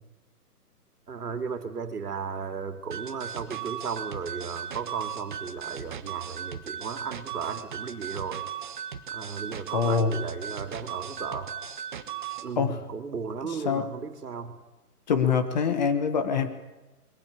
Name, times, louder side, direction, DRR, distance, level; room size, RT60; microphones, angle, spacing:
voice 1, 1.1-8.5 9.1-11.6 12.4-14.6, right 5 dB, 75° right, 8 dB, 2.7 m, -35 dB
sound 1, 2.9-12.5, right 9 dB, 30° right, 1.3 m, -37 dB
voice 2, 9.7-10.2 12.6-12.8 13.4-13.9 15.1-16.5, left 6 dB, 30° left, 9 dB, 1.3 m, -25 dB
21.5 x 17.0 x 8.5 m, 1.1 s
hypercardioid pair, 165°, 47 cm